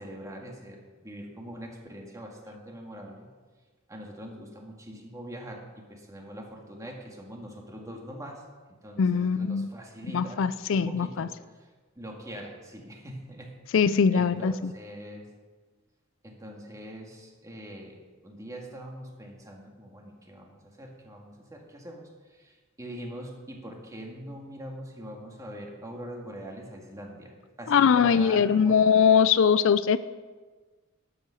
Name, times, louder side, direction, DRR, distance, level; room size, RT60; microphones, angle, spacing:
voice 1, 0.0-3.3 3.9-8.4 8.8-10.4 10.7-11.7 12.0-13.5 14.1-15.3 16.2-28.8, equal, 15° right, 0 dB, 2.0 m, -43 dB
voice 2, 9.0-9.7 10.1-11.3 13.7-14.7 27.7-30.0, left 6 dB, 65° left, 15 dB, 0.4 m, -22 dB
12.0 x 8.6 x 6.4 m, 1.4 s
head